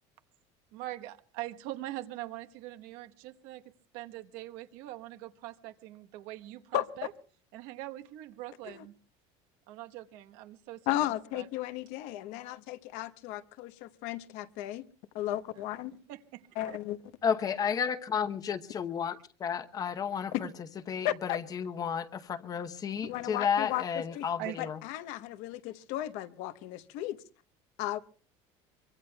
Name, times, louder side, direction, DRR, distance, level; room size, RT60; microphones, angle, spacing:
voice 1, 0.7-3.6 3.9-7.1 7.5-8.9 9.7-11.5 16.1-16.8 24.4-24.6, right 15 dB, 75° right, 1.2 m, -43 dB
voice 2, 10.9-14.8 15.1-15.9 16.6-17.0 20.3-20.4 21.0-21.4 23.0-24.3 24.6-27.2 27.8-28.0, left 14 dB, 70° left, 1.0 m, -35 dB
voice 3, 17.2-20.5 20.9-24.8, left 7 dB, 25° left, 0.9 m, -32 dB
24.0 x 24.0 x 2.3 m
cardioid pair, 160°, 13 cm